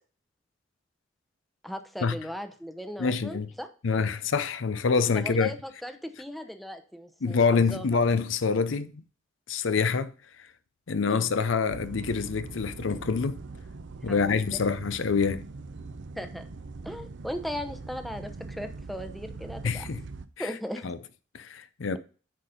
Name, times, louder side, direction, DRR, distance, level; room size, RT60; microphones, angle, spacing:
voice 1, 1.6-3.7 5.1-7.9 11.1-11.3 14.1-14.6 16.1-16.5 16.8-19.9 20.4-20.9, equal, ahead, 0.8 m, -38 dB
voice 2, 3.0-3.5 3.8-5.5 7.2-9.0 9.5-10.1 10.9-13.4 14.0-15.5 19.6-20.0 20.4-20.5 20.8-21.0 21.3-22.0, left 5 dB, 75° left, 0.6 m, -26 dB
sound 1, 11.7-20.3, right 3 dB, 65° right, 0.6 m, -42 dB
10.0 x 4.1 x 5.0 m
head